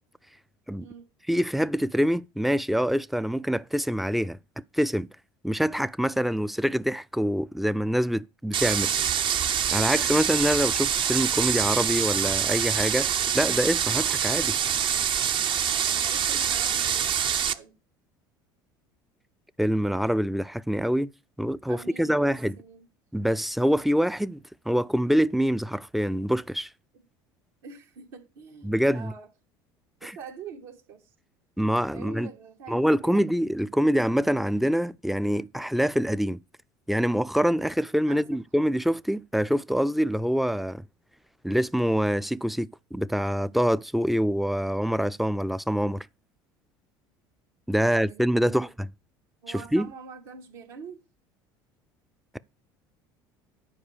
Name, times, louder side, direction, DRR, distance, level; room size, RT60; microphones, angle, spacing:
voice 1, 1.3-5.1 5.4-8.9 9.7-14.6 19.6-21.1 21.4-22.5 23.1-26.7 28.6-29.1 30.0-30.2 31.6-32.3 32.7-36.4 36.9-40.8 41.4-46.1 47.7-48.9 49.5-49.9, equal, ahead, 0.4 m, -25 dB
sound 1, 8.5-17.5, right 8 dB, 45° right, 0.8 m, -25 dB
voice 2, 15.7-17.7 21.7-22.9 26.9-27.0 27.6-29.3 30.0-31.1 31.9-33.2 38.1-38.2 47.8-48.7 49.4-51.0, right 5 dB, 75° right, 2.4 m, -45 dB
9.9 x 4.7 x 6.6 m
hypercardioid pair, 80°, 12 cm